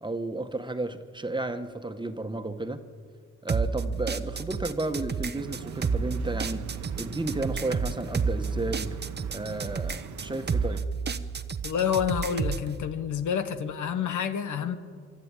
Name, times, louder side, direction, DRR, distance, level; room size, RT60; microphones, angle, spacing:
voice 1, 0.0-2.8 3.4-6.6 7.0-9.0 9.3-10.8, right 2 dB, 15° right, 1.5 m, -33 dB
sound 1, 3.5-12.7, right 5 dB, 35° right, 1.0 m, -30 dB
sound 2, 5.3-10.8, right 6 dB, 75° right, 1.2 m, -42 dB
voice 2, 11.6-14.8, left 8 dB, 80° left, 1.4 m, -28 dB
25.0 x 13.0 x 9.1 m
cardioid pair, 65°, 30 cm